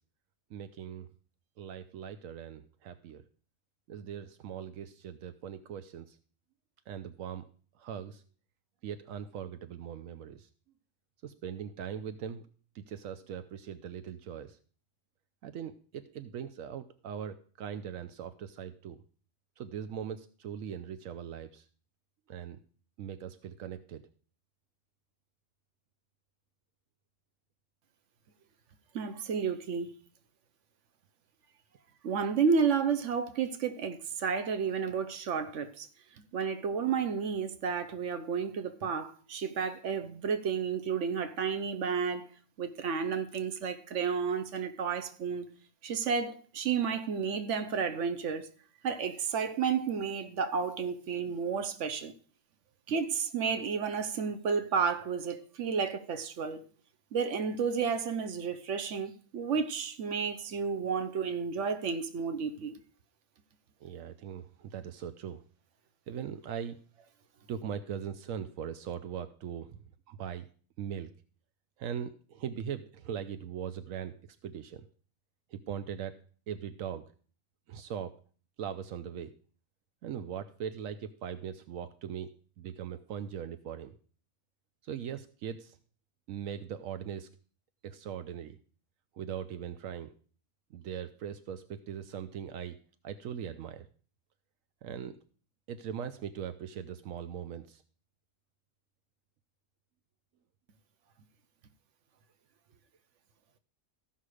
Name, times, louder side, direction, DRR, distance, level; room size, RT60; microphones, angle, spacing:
voice 1, 0.5-1.1 1.6-3.2 3.9-6.2 6.9-7.4 7.8-8.2 8.8-10.5 11.2-12.4 12.7-14.6 15.4-19.0 19.6-21.7 22.3-22.6 23.0-24.0 63.8-65.4 66.1-66.8 67.5-69.8 70.1-70.5 70.8-71.1 71.8-74.1 74.4-74.8 75.5-76.2 76.5-77.0 77.7-78.1 78.6-79.3 80.0-82.3 82.6-83.9 84.8-85.8 86.3-87.3 87.8-88.6 89.1-90.1 90.7-92.8 93.0-93.9 94.8-95.2 95.7-97.8, right 8 dB, 85° right, 1.0 m, -40 dB
voice 2, 28.9-29.9 32.0-35.9 36.3-42.3 42.6-45.5 45.8-48.5 48.8-52.1 52.9-56.6 57.1-62.8, right 6 dB, 65° right, 1.2 m, -31 dB
14.5 x 5.7 x 4.8 m
omnidirectional pair, 1.4 m